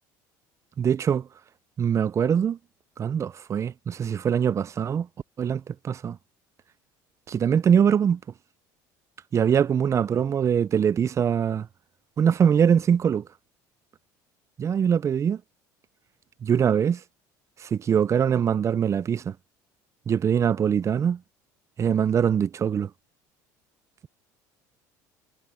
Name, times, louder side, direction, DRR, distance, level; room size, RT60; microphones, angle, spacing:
voice 1, 0.8-1.3 1.8-2.6 3.0-5.1 5.4-6.2 7.3-8.2 9.3-11.7 12.2-13.2 14.6-15.4 16.4-17.0 17.6-19.3 20.1-21.2 21.8-22.9, right 8 dB, 35° right, 0.6 m, -23 dB
supercardioid pair, 100°, 9 cm